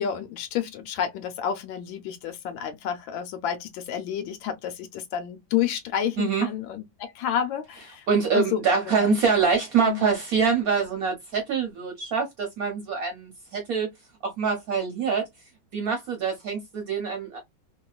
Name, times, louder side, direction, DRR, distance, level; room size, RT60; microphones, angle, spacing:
voice 1, 0.0-8.0 8.3-8.6 8.9-9.3 9.8-10.0, left 9 dB, 80° left, 1.4 m, -30 dB
voice 2, 6.2-6.5 8.1-13.9 14.2-15.3 15.7-17.4, right 5 dB, 60° right, 1.1 m, -25 dB
3.0 x 2.6 x 2.3 m
omnidirectional pair, 2.1 m